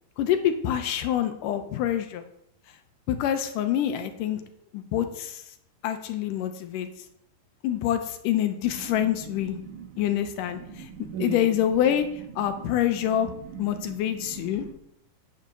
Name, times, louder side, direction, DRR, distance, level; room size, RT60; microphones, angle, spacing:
voice 1, 0.2-2.2 3.1-4.4 4.7-5.4 5.8-6.9 7.6-9.6 10.0-10.9 11.2-12.1 12.4-13.3 13.6-14.7, left 10 dB, 80° left, 8 dB, 2.1 m, -26 dB
voice 2, 8.8-10.2 10.5-11.9 12.4-14.7, right 7 dB, 65° right, 2 dB, 2.5 m, -40 dB
9.2 x 5.3 x 6.6 m, 0.75 s
omnidirectional pair, 4.1 m